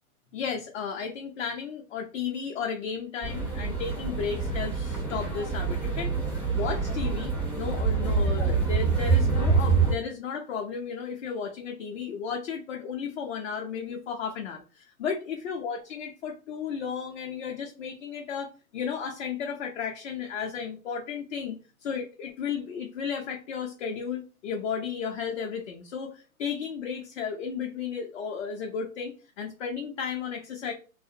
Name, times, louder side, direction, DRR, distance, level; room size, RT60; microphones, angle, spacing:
voice 1, 0.3-6.1 6.5-30.7, left 6 dB, 55° left, 1 dB, 0.5 m, -34 dB
sound 1, 3.2-9.9, right 4 dB, 5° right, 0.4 m, -26 dB
2.4 x 2.0 x 2.6 m, 0.35 s
hypercardioid pair, 140°, 44 cm